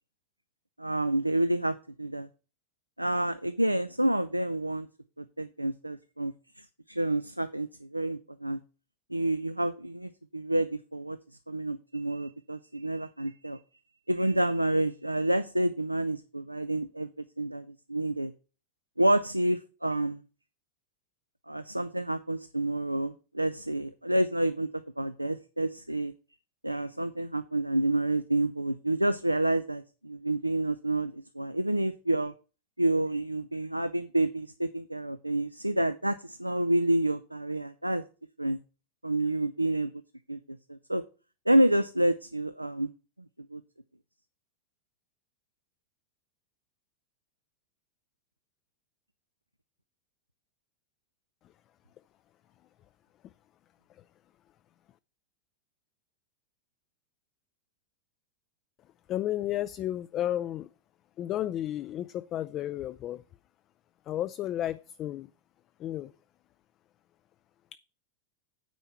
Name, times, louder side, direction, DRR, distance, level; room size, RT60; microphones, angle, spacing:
voice 1, 0.8-2.3 3.0-4.9 5.2-8.6 9.1-11.2 11.5-13.6 14.1-17.1 17.4-18.3 19.0-20.2 21.5-26.1 26.6-32.3 32.8-38.0 38.4-38.6 39.0-39.9 40.3-41.0 41.5-42.9 43.5-43.6, right 1 dB, 85° right, 0.3 m, -29 dB
voice 2, 59.1-60.7 61.2-63.2 64.1-65.3 65.8-66.1 67.7-67.8, left 12 dB, 35° left, 0.3 m, -32 dB
9.1 x 4.5 x 5.5 m
figure-of-eight pair, 90°, 0 cm